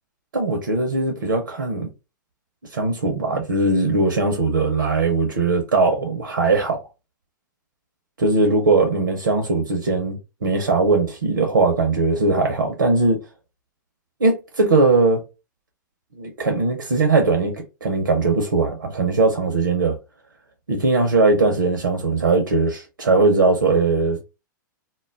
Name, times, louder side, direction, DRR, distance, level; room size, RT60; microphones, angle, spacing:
voice 1, 0.3-1.9 2.7-6.8 8.2-13.2 14.2-15.2 16.2-20.0 20.7-24.2, right 3 dB, 80° right, 0.6 m, -20 dB
2.2 x 2.0 x 3.4 m
figure-of-eight pair, 105°, 11 cm